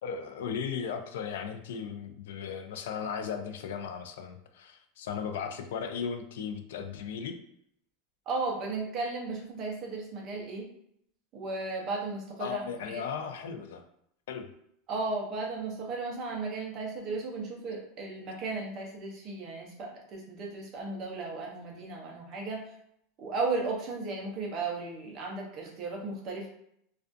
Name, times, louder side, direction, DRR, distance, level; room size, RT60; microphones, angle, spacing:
voice 1, 0.0-7.4 12.4-13.8 14.3-14.5, left 7 dB, 90° left, 6 dB, 0.3 m, -36 dB
voice 2, 8.3-10.7 11.3-13.0 14.9-22.7 23.2-26.5, right 3 dB, 30° right, -1 dB, 0.5 m, -35 dB
2.4 x 2.3 x 2.5 m, 0.72 s
supercardioid pair, 175°, 0 cm